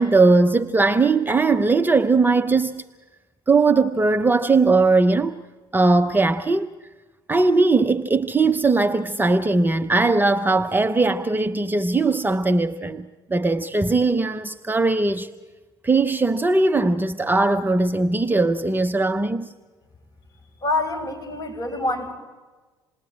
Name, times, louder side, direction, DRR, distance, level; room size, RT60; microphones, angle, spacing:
voice 1, 0.0-2.8 3.5-5.4 5.7-6.7 7.3-15.3 15.8-19.5, right 3 dB, 15° right, 0.9 m, -19 dB
voice 2, 20.6-22.1, left 2 dB, 30° left, 7.0 m, -26 dB
28.0 x 20.0 x 8.7 m
figure-of-eight pair, 55°, 13 cm